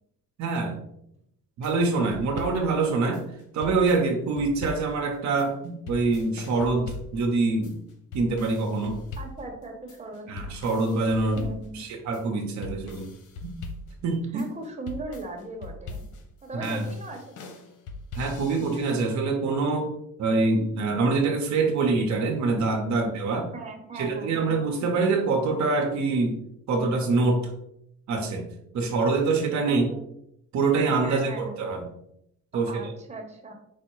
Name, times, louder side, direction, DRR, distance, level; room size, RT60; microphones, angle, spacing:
voice 1, 0.4-0.8 1.6-3.2 3.5-7.7 8.1-9.0 10.3-11.4 11.8-13.1 13.4-13.6 14.0-14.4 16.6-16.8 18.2-19.9 20.2-23.5 24.0-26.4 26.7-27.5 28.1-28.4 28.7-29.9 30.5-31.9 32.5-32.9, right 3 dB, 70° right, 2 dB, 0.8 m, -25 dB
sound 1, 1.6-19.0, left 3 dB, 80° left, 0.8 m, -41 dB
voice 2, 9.2-10.4 11.3-11.8 14.3-16.0 16.4-17.5 23.5-24.6 29.7-30.0 31.0-31.6 32.7-33.5, right 2 dB, 20° right, 1 dB, 1.1 m, -38 dB
4.7 x 2.1 x 4.6 m, 0.76 s
cardioid pair, 90°, 30 cm